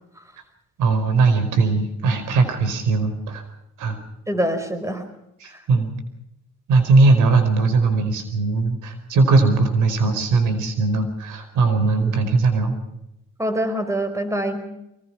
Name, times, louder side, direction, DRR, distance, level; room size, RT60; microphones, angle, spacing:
voice 1, 0.8-3.4 3.8-4.0 5.4-5.9 6.7-12.7, right 3 dB, 85° right, 9 dB, 4.7 m, -19 dB
voice 2, 4.3-5.0 5.5-5.6 12.0-12.1 13.4-14.7, right 1 dB, 10° right, 8 dB, 4.8 m, -25 dB
24.5 x 21.0 x 5.8 m, 0.86 s
cardioid pair, 90°, 30 cm